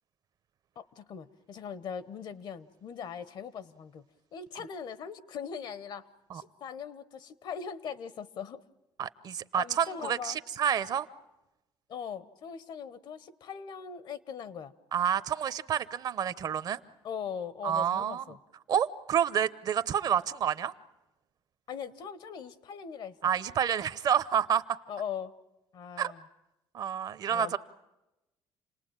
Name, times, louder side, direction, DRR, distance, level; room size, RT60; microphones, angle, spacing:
voice 1, 0.8-4.0 4.3-6.1 6.3-8.6 9.5-10.4 11.9-14.7 17.0-18.4 21.7-23.3 24.9-25.3 25.7-26.2 27.3-27.6, left 7 dB, 55° left, 17 dB, 1.1 m, -40 dB
voice 2, 9.0-11.1 14.9-16.8 17.6-18.2 18.7-20.7 23.2-24.8 26.0-26.1 26.7-27.6, right 9 dB, 50° right, 15 dB, 0.8 m, -29 dB
28.5 x 19.0 x 8.9 m, 0.97 s
cardioid pair, 130°, 9 cm